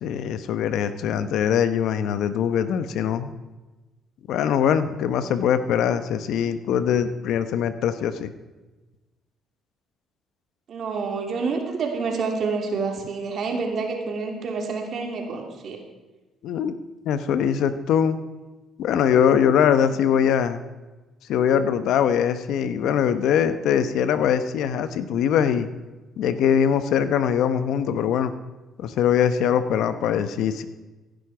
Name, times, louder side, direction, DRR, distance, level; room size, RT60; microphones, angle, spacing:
voice 1, 0.0-3.3 4.3-8.3 16.4-16.7 17.0-18.2 18.8-20.6 21.3-25.7 26.2-28.3 28.8-30.6, left 8 dB, 75° left, 11 dB, 0.9 m, -22 dB
voice 2, 10.7-15.8 19.8-20.0, right 4 dB, 55° right, 2 dB, 2.9 m, -28 dB
16.5 x 10.5 x 4.8 m, 1.2 s
cardioid pair, 80°, 0 cm